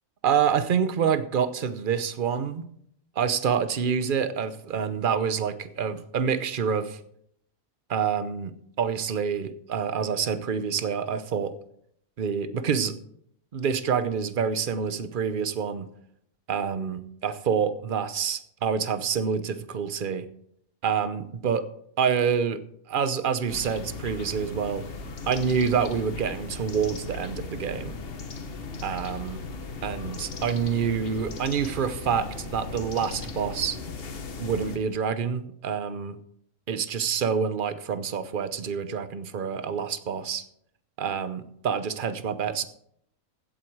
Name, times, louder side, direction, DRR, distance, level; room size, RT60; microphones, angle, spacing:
voice 1, 0.2-2.7 3.2-7.0 7.9-11.6 12.2-13.0 13.5-15.9 16.5-20.3 20.8-21.7 22.0-24.9 25.3-28.0 28.8-29.4 29.8-33.8 34.4-36.2 36.7-40.4 41.0-42.7, right 7 dB, 45° right, 12 dB, 0.9 m, -27 dB
sound 1, 23.5-34.8, left 4 dB, 50° left, 1.2 m, -37 dB
15.5 x 7.9 x 4.7 m, 0.70 s
omnidirectional pair, 1.4 m